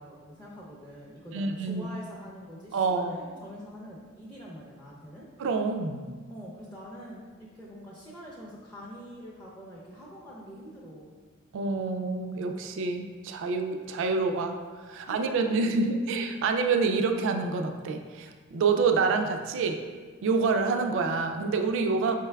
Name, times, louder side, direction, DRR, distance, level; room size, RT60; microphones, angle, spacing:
voice 1, 0.0-5.3 6.3-11.2 14.9-15.6, equal, 5° left, -6 dB, 0.5 m, -45 dB
voice 2, 1.3-1.9 2.7-3.2 5.4-6.0 11.5-19.8 20.2-22.2, right 4 dB, 65° right, 6 dB, 0.3 m, -27 dB
5.0 x 3.3 x 2.2 m, 1.5 s
head